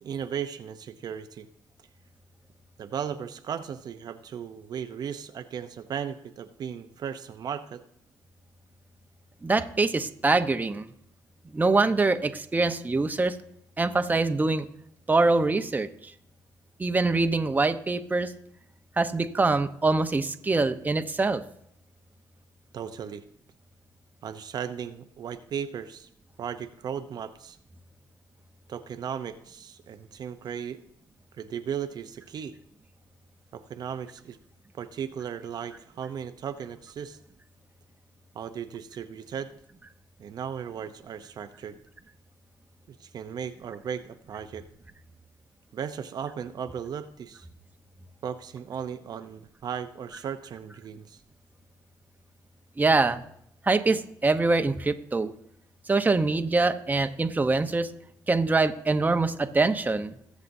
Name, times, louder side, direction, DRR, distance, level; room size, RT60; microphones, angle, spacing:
voice 1, 0.0-1.5 2.8-7.8 22.7-23.2 24.2-26.1 26.4-27.6 28.7-30.8 31.4-32.6 33.5-34.4 34.7-37.2 38.3-39.5 40.2-41.8 42.9-44.6 45.7-47.5 48.2-51.2, right 8 dB, 60° right, 8 dB, 0.7 m, -36 dB
voice 2, 9.4-10.9 11.5-13.4 13.8-14.7 15.1-15.9 16.8-18.3 19.0-21.4 52.8-53.2 53.6-55.3 55.9-57.9 58.3-60.1, right 3 dB, 20° right, 8 dB, 0.9 m, -24 dB
21.0 x 7.3 x 2.7 m, 0.72 s
supercardioid pair, 70°, 8 cm